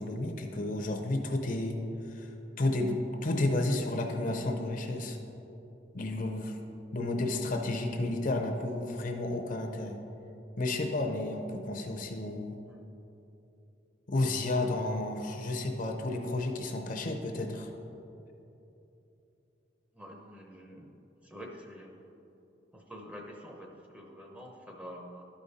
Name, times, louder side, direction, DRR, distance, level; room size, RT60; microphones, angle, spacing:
voice 1, 0.0-1.8 2.1-2.3 2.6-5.2 5.9-6.6 6.9-10.0 10.6-12.6 14.1-17.7, left 2 dB, 45° left, 3 dB, 0.6 m, -31 dB
voice 2, 19.9-20.9 21.2-21.9 22.7-25.2, equal, 5° right, 0 dB, 0.7 m, -47 dB
12.0 x 5.1 x 4.1 m, 2.9 s
head